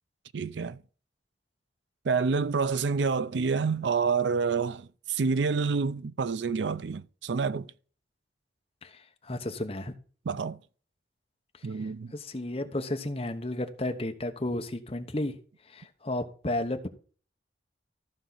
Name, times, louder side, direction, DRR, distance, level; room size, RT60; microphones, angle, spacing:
voice 1, 0.3-0.8 2.0-7.7 10.3-10.6 11.6-12.1, right 5 dB, 80° right, 0.5 m, -28 dB
voice 2, 8.8-9.9 12.1-15.4 15.7-16.9, left 1 dB, 30° left, 1.0 m, -33 dB
14.5 x 5.6 x 4.0 m
head